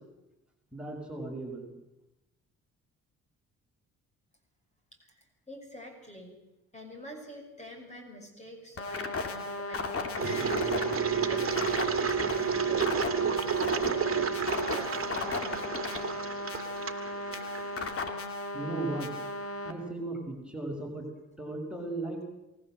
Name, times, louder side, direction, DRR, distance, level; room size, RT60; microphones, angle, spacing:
voice 1, 0.7-1.7 18.5-19.1 19.6-21.1 21.4-22.2, right 2 dB, 5° right, 0 dB, 6.1 m, -36 dB
voice 2, 5.0-6.4 6.7-15.7, equal, 20° left, 3 dB, 6.6 m, -47 dB
sound 1, 8.8-19.7, left 3 dB, 50° left, 2.9 m, -35 dB
Acoustic guitar, 10.2-15.7, left 1 dB, 70° left, 6.8 m, -46 dB
Engine, 10.2-17.9, right 7 dB, 45° right, 2.3 m, -31 dB
27.5 x 18.5 x 7.8 m, 0.93 s
cardioid pair, 90°, 30 cm